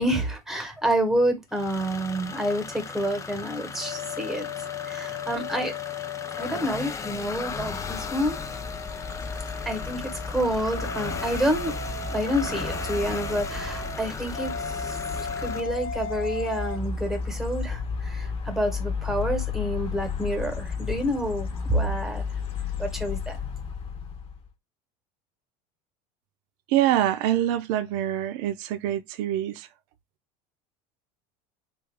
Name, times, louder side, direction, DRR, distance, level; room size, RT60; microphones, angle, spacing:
voice 1, 0.0-4.5 4.9-5.7 6.4-8.4 9.6-11.7 12.1-15.0 15.4-22.2 22.8-23.4, right 1 dB, ahead, 1.1 m, -28 dB
sound 1, 1.5-15.6, left 5 dB, 20° left, 0.4 m, -37 dB
sound 2, 3.8-6.6 7.0-10.3 10.7-16.8, left 4 dB, 60° left, 1.0 m, -37 dB
sound 3, 6.9-24.5, left 5 dB, 35° left, 1.0 m, -34 dB
voice 2, 26.7-29.7, right 12 dB, 70° right, 0.5 m, -25 dB
3.4 x 2.4 x 3.4 m
supercardioid pair, 125°, 16 cm